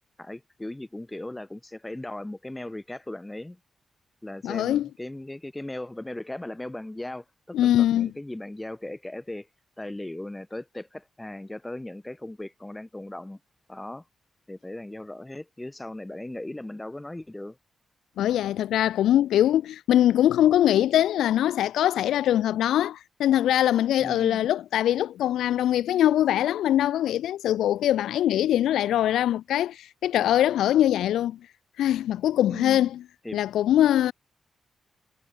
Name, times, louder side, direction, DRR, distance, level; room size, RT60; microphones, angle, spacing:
voice 1, 0.2-3.6 4.2-9.5 9.8-13.4 13.7-14.0 14.5-17.6 24.0-24.4 32.5-32.9 33.2-33.4, left 1 dB, 15° left, 2.3 m, -37 dB
voice 2, 4.4-4.9 7.5-8.1 18.2-31.4 31.8-33.0 33.3-34.1, left 12 dB, 80° left, 0.9 m, -22 dB
hypercardioid pair, 40°, 0 cm